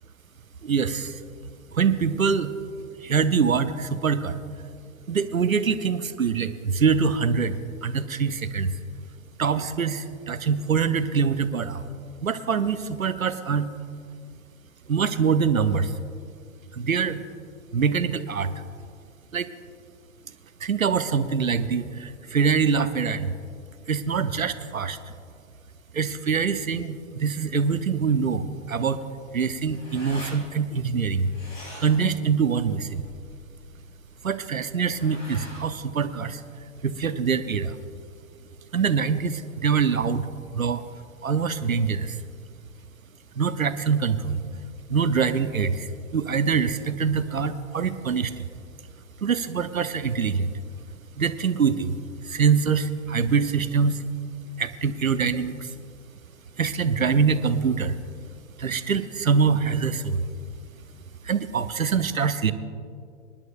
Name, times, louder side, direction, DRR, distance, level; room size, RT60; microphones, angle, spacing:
voice 1, 0.6-1.2 1.7-2.5 3.0-4.4 5.1-8.7 9.4-11.8 12.2-13.7 14.9-15.9 16.7-17.2 17.7-18.5 19.3-19.5 20.6-23.3 23.9-25.0 25.9-29.0 29.3-31.3 31.8-33.0 34.2-36.4 36.8-37.7 38.7-40.3 40.5-40.8 41.2-42.1 43.4-44.4 44.9-48.3 49.2-50.5 51.2-52.0 52.2-54.0 54.6-55.7 56.6-57.9 58.6-60.2 61.2-62.5, right 6 dB, 90° right, 12 dB, 0.7 m, -24 dB
sound 1, 29.1-36.9, equal, 80° left, 3.6 m, -46 dB
27.0 x 10.5 x 2.4 m, 2.3 s
figure-of-eight pair, 100°, 40 cm